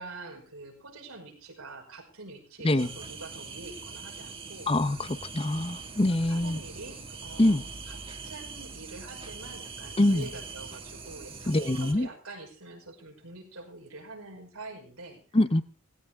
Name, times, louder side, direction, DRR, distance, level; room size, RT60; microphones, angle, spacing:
voice 1, 0.0-4.7 5.4-5.8 6.3-15.2, right 3 dB, 90° right, 5.4 m, -45 dB
sound 1, 2.8-11.9, right 4 dB, 25° right, 1.9 m, -42 dB
voice 2, 4.7-6.6 7.4-7.6 10.0-10.3 11.5-12.1 15.3-15.6, left 1 dB, 25° left, 0.8 m, -24 dB
17.5 x 17.0 x 3.6 m
head